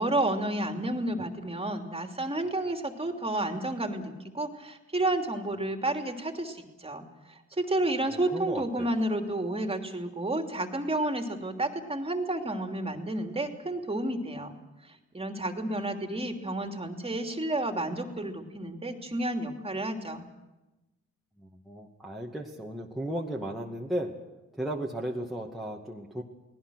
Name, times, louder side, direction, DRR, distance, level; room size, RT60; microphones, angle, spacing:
voice 1, 0.0-7.0 7.6-14.5 15.1-20.2, right 1 dB, 20° right, 5 dB, 3.1 m, -31 dB
voice 2, 8.1-8.9 21.4-24.1 24.5-26.2, right 1 dB, ahead, -2 dB, 2.2 m, -35 dB
29.5 x 19.5 x 6.5 m, 1.0 s
cardioid pair, 90°, 30 cm